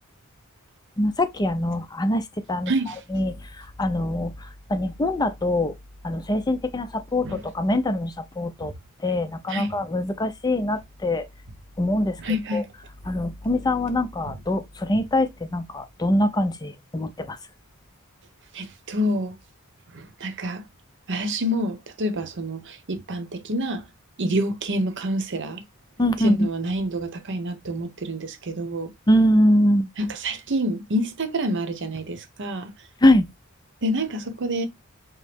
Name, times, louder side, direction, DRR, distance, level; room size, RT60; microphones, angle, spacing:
voice 1, 1.0-2.2 2.5-2.7 3.1-3.3 3.8-4.3 4.7-5.7 6.0-6.9 7.1-7.3 7.5-8.1 8.4-8.7 9.0-11.2 11.8-12.1 12.5-12.6 13.1-14.6 14.9-17.3 26.0-26.3 29.1-29.9 33.0-33.2, left 1 dB, 20° left, 0.5 m, -22 dB
voice 2, 2.7-3.0 7.2-7.4 9.5-9.7 12.2-12.7 14.3-14.4 14.9-15.0 18.5-19.4 19.9-20.6 21.1-23.8 24.2-25.6 26.2-28.9 30.0-32.7 33.8-34.7, equal, 55° right, 0.8 m, -27 dB
5.1 x 2.1 x 4.4 m
head